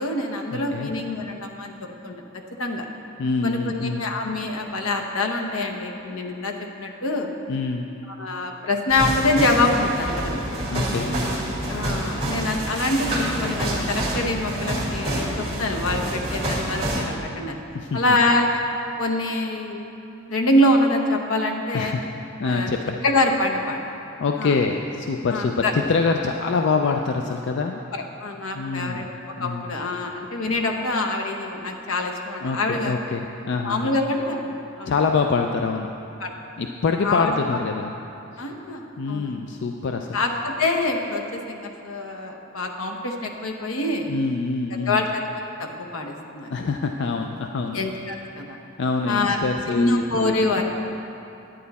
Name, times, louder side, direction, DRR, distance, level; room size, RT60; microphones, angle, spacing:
voice 1, 0.0-1.7 2.0-2.2 2.6-2.8 3.4-7.3 8.2-10.4 11.7-17.6 17.9-18.6 19.0-19.8 20.3-21.9 22.4-22.7 23.0-23.8 24.4-24.6 25.3-25.7 27.9-29.0 29.4-33.0 33.7-34.9 36.2-36.3 37.0-37.4 38.4-39.4 40.1-44.1 44.9-45.2 45.6-46.5 47.7-48.6 49.1-49.4 49.7-50.6, left 2 dB, 80° left, 2 dB, 0.9 m, -25 dB
voice 2, 0.5-0.9 3.2-4.0 7.5-7.8 10.7-11.2 17.7-18.2 21.7-22.1 22.4-23.0 24.2-27.8 28.5-29.0 29.4-29.7 30.0-30.1 32.4-33.9 34.9-35.9 36.6-37.9 38.3-38.4 39.0-40.2 44.1-45.0 46.5-47.8 48.8-50.4, left 4 dB, 55° left, 4 dB, 0.4 m, -25 dB
sound 1, 8.9-17.0, right 1 dB, 25° right, 1.9 m, -27 dB
10.0 x 9.2 x 4.1 m, 2.9 s
head